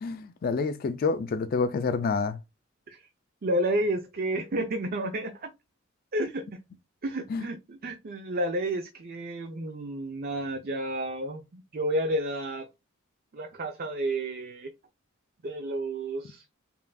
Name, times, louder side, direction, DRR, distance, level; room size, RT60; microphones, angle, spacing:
voice 1, 0.0-2.4 7.3-7.5, left 4 dB, 45° left, 0.3 m, -28 dB
voice 2, 3.4-5.5 6.1-6.6 7.0-12.7 13.3-14.7 15.4-16.4, right 1 dB, 45° right, 0.5 m, -31 dB
5.5 x 2.5 x 2.2 m
head